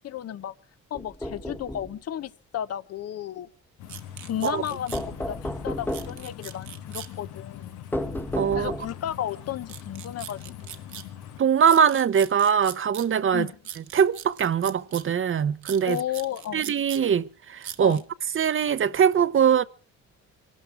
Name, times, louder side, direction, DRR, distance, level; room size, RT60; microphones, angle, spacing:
voice 1, 0.0-0.5 0.9-3.5 4.2-7.8 8.5-10.9 13.3-13.6 15.9-16.6 17.8-18.0, left 10 dB, 55° left, 0.8 m, -33 dB
sound 1, 0.9-1.9 4.9-6.2 7.9-9.1, left 1 dB, 5° left, 1.0 m, -32 dB
sound 2, 3.8-11.4, left 10 dB, 85° left, 1.3 m, -42 dB
sound 3, 3.9-5.0 5.9-7.1 9.7-11.1 11.6-13.1 13.7-15.1 15.6-17.0 17.6-18.0, right 10 dB, 70° right, 1.4 m, -40 dB
voice 2, 8.3-8.7 11.4-13.5 13.9-16.0 16.5-18.0 18.3-19.6, right 8 dB, 45° right, 0.7 m, -22 dB
24.5 x 12.5 x 4.6 m
cardioid pair, 90°, 30 cm